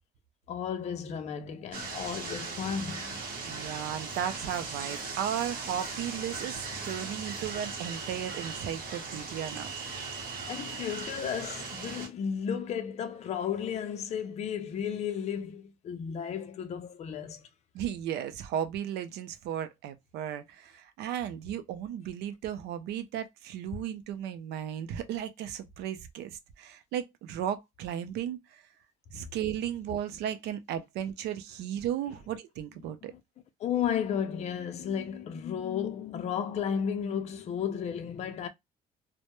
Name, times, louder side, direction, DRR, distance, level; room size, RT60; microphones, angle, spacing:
voice 1, 0.5-3.2 10.4-17.5 33.0-33.2 33.6-38.5, left 8 dB, 40° left, 0.4 m, -33 dB
sound 1, 1.7-12.1, right 4 dB, 60° right, 0.9 m, -38 dB
voice 2, 3.4-9.7 17.7-28.6 29.1-33.1, right 10 dB, 80° right, 0.4 m, -35 dB
2.1 x 2.1 x 2.9 m
cardioid pair, 110°, 17 cm